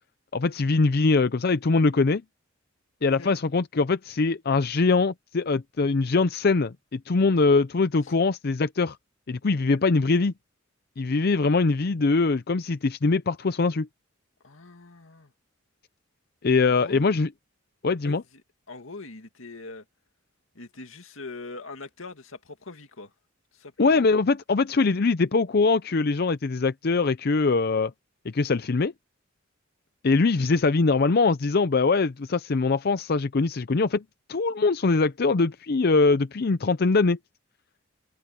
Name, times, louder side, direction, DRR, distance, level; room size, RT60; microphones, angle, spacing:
voice 1, 0.3-2.2 3.0-9.0 9.3-10.3 11.0-13.9 16.4-17.3 17.8-18.2 23.8-27.9 28.3-28.9 30.0-34.0 34.3-37.2, left 3 dB, 50° left, 0.6 m, -22 dB
voice 2, 3.0-3.3 14.4-15.3 16.6-17.1 18.0-18.2 18.7-19.8 20.5-23.1 23.5-24.0 30.4-30.5, left 3 dB, 85° left, 2.3 m, -42 dB
head